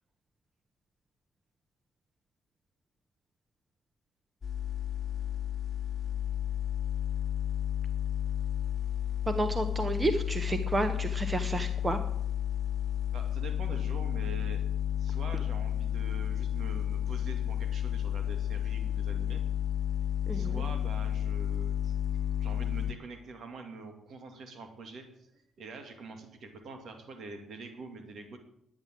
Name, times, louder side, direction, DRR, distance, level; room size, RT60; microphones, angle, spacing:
sound 1, 4.4-22.9, left 10 dB, 35° left, 1.2 m, -32 dB
voice 1, 9.3-12.0 20.3-20.6, right 2 dB, 25° right, 8 dB, 1.2 m, -31 dB
voice 2, 13.1-14.6 15.0-19.4 20.3-22.0 22.4-28.4, right 3 dB, 60° right, 5 dB, 2.5 m, -45 dB
11.0 x 9.8 x 7.6 m, 0.74 s
cardioid pair, 90°, 0 cm